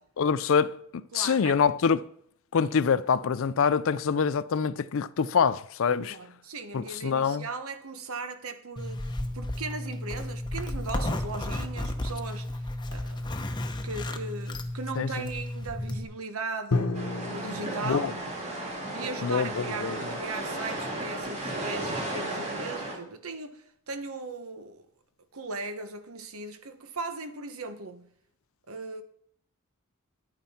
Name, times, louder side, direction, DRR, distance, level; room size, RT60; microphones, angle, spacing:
voice 1, 0.2-2.0 2.5-6.2 6.7-7.5 15.0-15.1 17.9-18.1 19.2-20.0, left 6 dB, 60° left, 0.4 m, -25 dB
voice 2, 1.1-1.6 6.0-13.3 13.8-18.2 18.9-24.9 25.3-28.1 28.7-29.0, right 3 dB, 75° right, 1.1 m, -38 dB
Zipper (clothing), 8.8-16.0, left 1 dB, 20° left, 0.8 m, -33 dB
Drum, 16.7-20.5, left 3 dB, 90° left, 1.0 m, -34 dB
sound 1, 16.9-22.9, right 1 dB, 30° right, 2.4 m, -34 dB
10.5 x 9.0 x 4.3 m
head